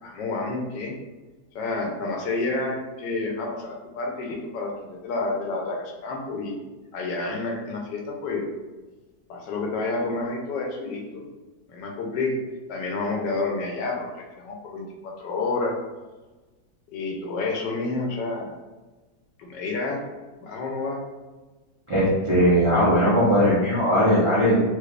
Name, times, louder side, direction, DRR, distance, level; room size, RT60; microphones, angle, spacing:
voice 1, 0.0-0.9 1.5-6.6 6.9-8.5 9.3-11.2 11.7-12.4 12.7-15.8 16.9-18.5 19.4-20.0 20.4-21.0, left 3 dB, 80° left, 1 dB, 1.3 m, -29 dB
voice 2, 21.9-24.6, equal, 30° right, -10 dB, 0.6 m, -19 dB
3.3 x 3.2 x 2.4 m, 1.2 s
omnidirectional pair, 1.9 m